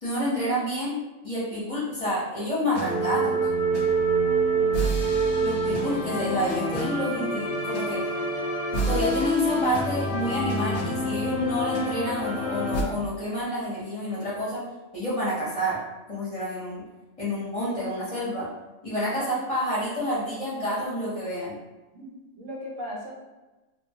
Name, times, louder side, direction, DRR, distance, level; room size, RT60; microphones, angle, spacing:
voice 1, 0.0-3.5 5.4-8.1 8.8-14.6 14.9-15.8 16.1-16.8 17.2-18.5 18.8-21.5, equal, 30° left, -9 dB, 0.8 m, -29 dB
sound 1, 2.7-12.8, right 2 dB, 70° left, 0.8 m, -26 dB
voice 2, 4.8-5.3 19.2-19.3 21.9-23.1, equal, 80° right, -3 dB, 1.1 m, -38 dB
2.9 x 2.1 x 2.7 m, 1.1 s
omnidirectional pair, 1.3 m